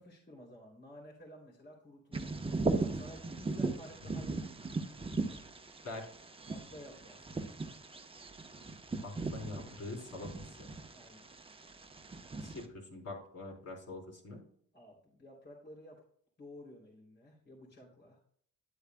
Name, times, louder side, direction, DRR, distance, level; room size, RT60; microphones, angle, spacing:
voice 1, 0.0-2.4 2.8-4.6 6.5-7.7 10.9-11.3 14.7-16.0 16.4-18.2, equal, 35° left, -3 dB, 3.2 m, -53 dB
Bird vocalization bird call bird song, 2.1-12.6, right 3 dB, 20° right, 1.0 m, -38 dB
voice 2, 9.0-10.3 10.6-10.7 12.3-14.4, left 2 dB, 55° left, -1 dB, 3.9 m, -44 dB
10.5 x 8.0 x 2.3 m, 0.63 s
cardioid pair, 90°, 30 cm